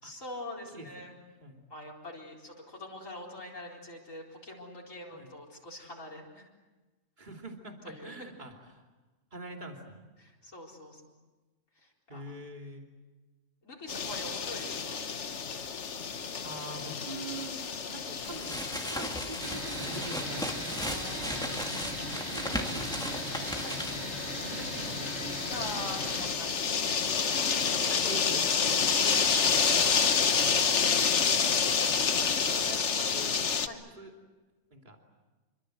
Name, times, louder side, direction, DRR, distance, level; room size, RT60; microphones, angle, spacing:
voice 1, 0.0-1.2 1.7-6.5 7.8-8.3 10.2-11.1 11.8-12.2 13.6-15.0 20.8-21.6 22.4-22.5 23.6-23.8 25.5-28.2 33.6-33.8, left 1 dB, 75° left, -2 dB, 4.8 m, -44 dB
voice 2, 0.7-1.6 5.1-5.3 7.2-8.8 9.3-10.0 12.1-12.8 16.4-21.0 22.1-23.2 24.3-25.1 27.6-29.7 30.0-30.7 31.2-31.6 32.1-33.4 34.0-34.1 34.7-35.0, right 2 dB, 35° right, 2 dB, 3.1 m, -45 dB
sound 1, 13.9-33.7, left 6 dB, 60° left, 1.5 m, -30 dB
sound 2, 18.2-24.2, equal, 5° left, 2.5 m, -37 dB
sound 3, 19.4-26.3, right 2 dB, 75° right, 4.7 m, -39 dB
27.5 x 24.5 x 7.9 m, 1.2 s
omnidirectional pair, 1.4 m